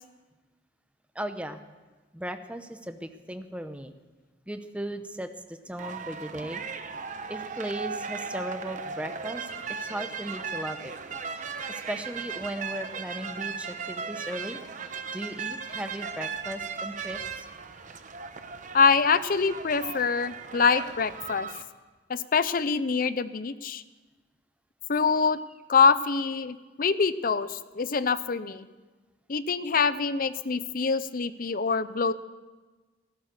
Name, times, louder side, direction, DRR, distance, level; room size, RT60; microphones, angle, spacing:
voice 1, 1.1-1.6 2.1-3.9 4.5-6.6 7.3-9.5 9.8-10.9 11.7-14.6 15.1-17.5, right 1 dB, 5° right, 8 dB, 0.8 m, -37 dB
sound 1, 5.8-21.6, right 5 dB, 45° right, 0.9 m, -37 dB
voice 2, 18.7-21.5 22.1-23.8 24.9-25.4 25.7-28.7 29.3-32.1, left 5 dB, 50° left, 15 dB, 0.6 m, -25 dB
15.5 x 13.0 x 6.7 m, 1.2 s
head